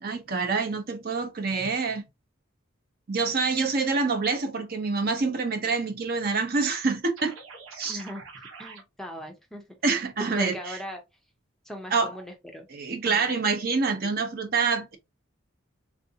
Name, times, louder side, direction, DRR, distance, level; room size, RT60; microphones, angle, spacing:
voice 1, 0.0-2.0 3.1-7.4 7.8-8.0 9.8-10.8 11.9-12.1 12.7-15.0, right 4 dB, 45° right, 0.6 m, -26 dB
sound 1, 7.2-8.8, right 4 dB, 90° right, 0.9 m, -45 dB
voice 2, 7.8-8.3 8.6-9.6 10.4-11.0 11.6-12.7 13.1-13.3, equal, ahead, 0.5 m, -39 dB
3.5 x 2.5 x 2.6 m
head